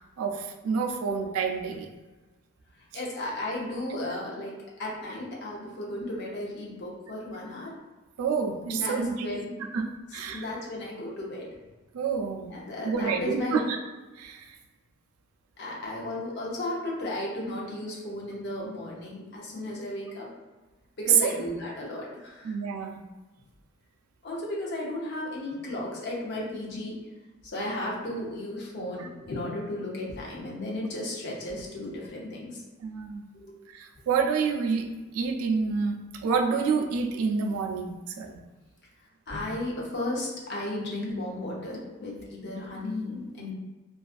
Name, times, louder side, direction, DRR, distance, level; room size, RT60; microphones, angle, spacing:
voice 1, 0.0-1.9 8.2-9.3 9.7-10.4 11.9-12.5 12.8-13.8 14.2-14.5 21.2-21.3 22.4-23.0 32.8-33.3 33.7-34.9 35.1-38.4, right 5 dB, 85° right, 4 dB, 0.3 m, -28 dB
voice 2, 2.9-7.7 8.7-9.5 10.3-11.5 12.5-13.6 15.6-20.3 21.0-22.6 24.2-27.0 27.4-32.6 33.3-33.6 39.3-43.5, left 1 dB, 50° left, -4 dB, 0.6 m, -34 dB
2.4 x 2.3 x 2.4 m, 1.2 s
head